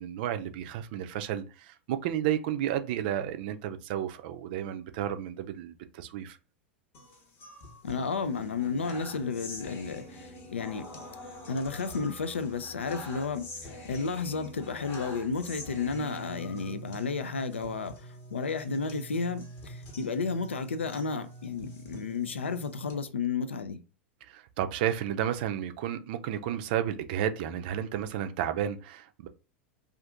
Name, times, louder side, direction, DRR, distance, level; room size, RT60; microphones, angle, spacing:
voice 1, 0.0-6.4 24.2-29.3, right 10 dB, 50° right, 0.4 m, -32 dB
sound 1, 6.9-22.9, left 1 dB, 40° left, 0.9 m, -45 dB
voice 2, 7.8-10.9 11.5-23.8, left 4 dB, 75° left, 0.4 m, -32 dB
2.5 x 2.5 x 3.4 m
figure-of-eight pair, 90°, 6 cm